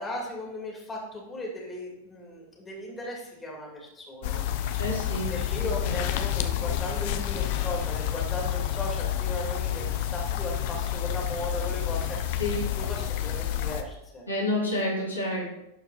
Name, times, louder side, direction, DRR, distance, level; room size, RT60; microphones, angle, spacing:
voice 1, 0.0-4.4 5.3-12.4 12.8-14.2, left 1 dB, 15° left, -2 dB, 2.6 m, -37 dB
sound 1, 4.2-13.8, left 11 dB, 50° left, 0.7 m, -29 dB
voice 2, 4.8-5.3 5.8-5.9 12.4-12.7 14.3-15.5, left 1 dB, 80° left, -4 dB, 2.7 m, -29 dB
12.0 x 4.7 x 4.2 m, 0.85 s
figure-of-eight pair, 90°, 0 cm